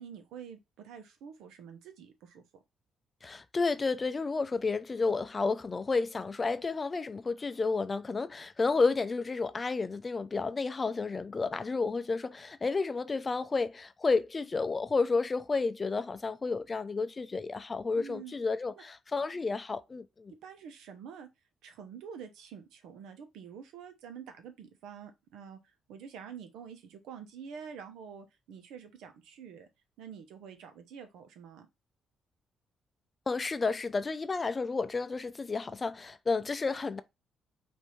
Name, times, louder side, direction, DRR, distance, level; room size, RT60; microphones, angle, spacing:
voice 1, 0.0-2.4 17.9-18.4 18.8-18.9 20.4-21.3 21.6-29.7 30.0-31.7, right 7 dB, 90° right, 0.8 m, -47 dB
voice 2, 3.2-20.3 33.3-37.0, left 4 dB, 30° left, 0.4 m, -31 dB
5.4 x 2.7 x 3.1 m
cardioid pair, 90°, 0 cm